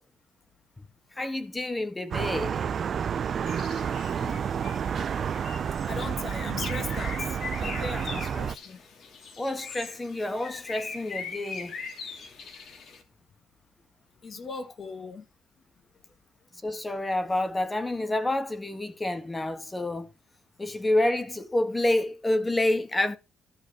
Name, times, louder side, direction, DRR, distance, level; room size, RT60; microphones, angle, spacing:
voice 1, 1.2-2.7 9.4-11.7 16.6-20.1 20.6-23.2, left 1 dB, 15° left, 1.7 m, -28 dB
sound 1, 2.1-8.6, right 7 dB, 55° right, 0.5 m, -30 dB
Bird, 3.5-13.0, left 5 dB, 65° left, 2.8 m, -41 dB
voice 2, 5.9-8.8 14.2-15.3, left 4 dB, 45° left, 1.8 m, -38 dB
13.5 x 4.9 x 4.8 m
cardioid pair, 90°, 0 cm